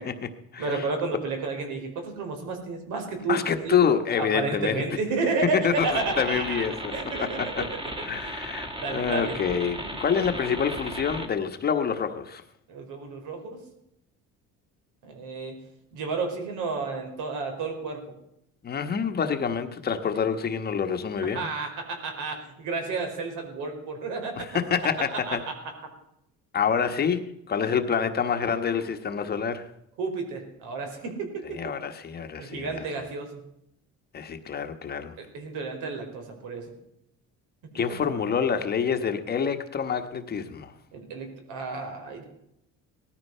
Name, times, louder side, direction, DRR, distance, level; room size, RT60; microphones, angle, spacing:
voice 1, 0.0-0.9 3.3-4.8 5.5-6.9 7.2-7.7 8.0-12.4 18.6-21.5 24.4-25.4 26.5-29.7 31.4-32.9 34.1-35.1 37.7-40.7, left 7 dB, 30° left, 7 dB, 1.2 m, -27 dB
voice 2, 0.6-3.8 4.2-6.6 6.9-7.5 8.2-8.3 8.8-9.4 12.7-13.6 15.0-15.6 15.9-18.0 21.3-24.4 25.3-25.4 30.0-31.6 32.4-33.4 35.2-36.7 37.9-38.0 40.9-42.2, right 4 dB, 80° right, 4 dB, 4.9 m, -31 dB
sound 1, 5.7-11.3, right 1 dB, 15° right, 1.9 m, -36 dB
18.5 x 13.5 x 5.6 m, 0.80 s
cardioid pair, 150°, 31 cm